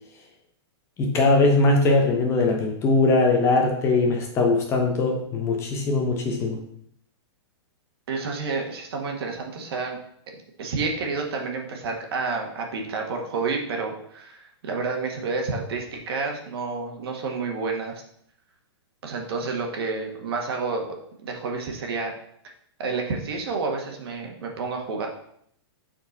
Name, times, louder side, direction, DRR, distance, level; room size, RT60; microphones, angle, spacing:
voice 1, 1.0-6.6, left 3 dB, 20° left, 2 dB, 0.9 m, -21 dB
voice 2, 8.1-10.0 10.6-18.0 19.0-20.8 21.2-22.1 22.8-25.1, right 4 dB, 65° right, 2 dB, 1.6 m, -29 dB
6.7 x 4.4 x 4.1 m, 0.68 s
hypercardioid pair, 160°, 14 cm